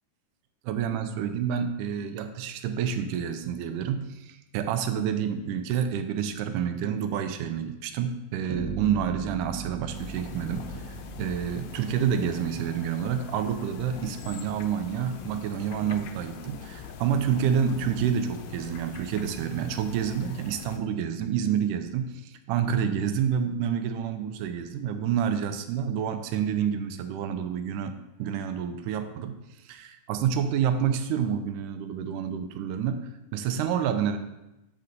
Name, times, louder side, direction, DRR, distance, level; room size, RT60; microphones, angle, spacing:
voice 1, 0.7-27.9 28.2-34.2, right 8 dB, 85° right, 8 dB, 2.0 m, -28 dB
sound 1, 8.5-12.5, right 5 dB, 50° right, 2.0 m, -38 dB
sound 2, 9.9-20.8, left 6 dB, 80° left, 1.7 m, -43 dB
8.1 x 4.2 x 3.8 m, 0.94 s
omnidirectional pair, 3.7 m